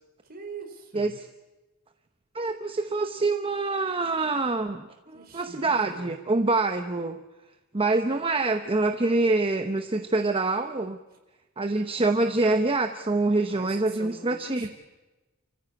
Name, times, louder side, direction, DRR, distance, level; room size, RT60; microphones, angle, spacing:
voice 1, 0.2-1.2 5.1-6.2 13.5-14.7, right 3 dB, 45° right, 4 dB, 4.3 m, -43 dB
voice 2, 2.3-7.2 7.7-11.0 11.6-14.7, right 3 dB, 25° right, 7 dB, 0.9 m, -25 dB
28.5 x 15.0 x 8.5 m, 1.1 s
head